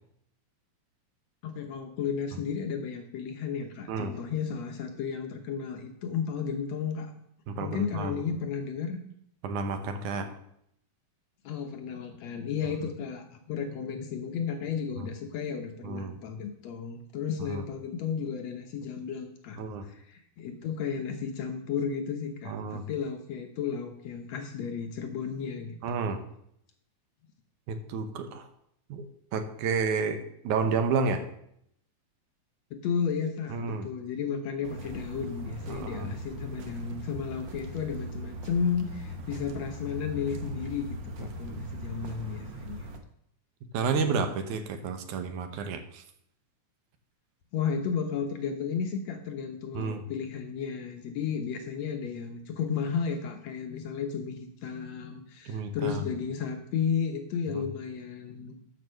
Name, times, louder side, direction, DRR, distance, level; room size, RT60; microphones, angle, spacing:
voice 1, 1.4-7.1 7.6-9.0 11.4-25.8 32.7-42.9 47.5-58.5, left 6 dB, 70° left, 5 dB, 2.1 m, -33 dB
voice 2, 7.5-8.1 9.4-10.3 15.0-15.1 15.8-16.2 17.5-17.6 19.6-19.9 22.5-22.9 25.8-26.2 27.7-28.5 28.9-29.1 29.3-31.3 33.5-33.9 35.7-36.1 41.2-41.9 43.7-46.0 49.7-50.0 55.5-56.0 57.5-57.7, right 4 dB, 85° right, 7 dB, 2.5 m, -31 dB
sound 1, 34.6-43.0, right 1 dB, 60° right, 1.2 m, -40 dB
12.5 x 5.4 x 6.4 m, 0.73 s
omnidirectional pair, 3.4 m